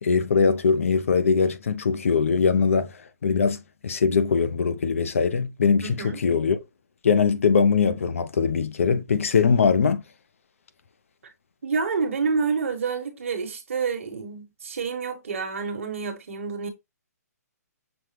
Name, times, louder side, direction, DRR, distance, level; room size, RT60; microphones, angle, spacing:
voice 1, 0.0-3.6 3.8-6.6 7.0-10.0, left 5 dB, 50° left, 0.5 m, -21 dB
voice 2, 5.8-6.2 11.6-16.7, right 5 dB, 50° right, 1.2 m, -28 dB
6.1 x 2.1 x 3.3 m
hypercardioid pair, 180°, 9 cm